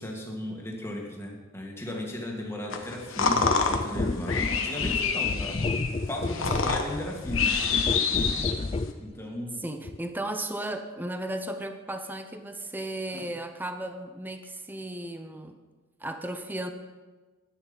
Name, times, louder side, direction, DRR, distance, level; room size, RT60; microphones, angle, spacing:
voice 1, 0.0-5.6 6.1-7.5 9.0-9.6 13.1-13.3, left 1 dB, 15° left, -1 dB, 2.0 m, -36 dB
sound 1, 2.7-8.9, left 5 dB, 85° left, 1.2 m, -28 dB
sound 2, 3.4-9.0 9.8-10.0, left 3 dB, 30° left, 0.4 m, -31 dB
voice 2, 9.6-15.6 16.0-16.7, right 1 dB, 10° right, 7 dB, 0.8 m, -35 dB
13.0 x 9.8 x 5.2 m, 1.3 s
head